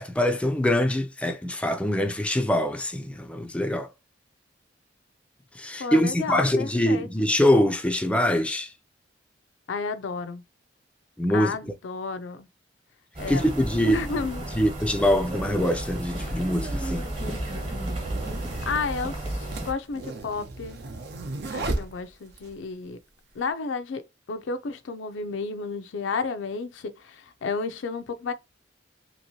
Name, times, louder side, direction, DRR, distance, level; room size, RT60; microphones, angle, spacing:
voice 1, 0.0-3.9 5.5-8.7 11.2-11.7 13.3-14.3 14.5-17.0, left 1 dB, 5° left, 0.3 m, -24 dB
voice 2, 5.8-7.1 9.7-10.4 11.3-12.5 13.2-13.5 13.9-14.5 18.6-20.8 21.5-23.0 23.3-24.0 24.3-28.3, left 4 dB, 85° left, 0.4 m, -32 dB
sound 1, 13.1-19.7, right 1 dB, 30° right, 1.1 m, -33 dB
sound 2, 16.2-22.5, right 2 dB, 65° right, 0.7 m, -35 dB
2.9 x 2.9 x 2.7 m
head